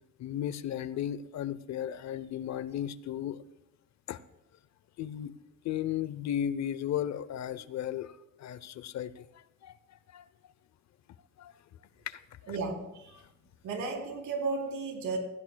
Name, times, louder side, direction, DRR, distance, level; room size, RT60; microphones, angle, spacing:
voice 1, 0.2-3.4 4.1-4.2 5.0-5.3 5.6-8.1 8.4-9.8 10.1-10.2 11.4-11.5 12.1-12.6 13.1-13.2, left 10 dB, 65° left, 16 dB, 0.6 m, -35 dB
voice 2, 12.5-12.8 13.6-15.2, right 4 dB, 80° right, 1 dB, 3.4 m, -33 dB
17.0 x 16.0 x 2.3 m, 0.91 s
cardioid pair, 90°, 30 cm